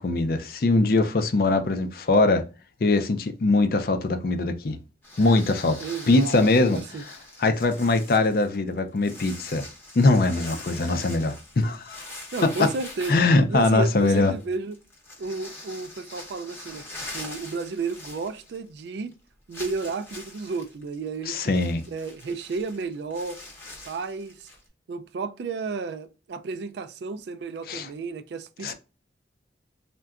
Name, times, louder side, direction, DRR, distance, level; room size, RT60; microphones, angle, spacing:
voice 1, 0.0-2.4 2.8-4.8 5.2-5.8 6.1-6.8 7.4-9.6 10.0-12.1 12.4-12.5 13.1-14.4 21.3-21.8 27.7-27.9 28.6-28.7, left 2 dB, 55° left, 0.4 m, -22 dB
sound 1, 5.0-18.8 19.1-19.2 19.5-24.7, left 2 dB, 15° left, 0.7 m, -43 dB
voice 2, 5.8-7.0 12.3-13.2 13.5-14.8 15.2-19.1 19.5-21.5 21.9-23.4 23.9-24.5 24.9-28.7, right 4 dB, 70° right, 0.3 m, -32 dB
3.7 x 2.2 x 2.3 m
head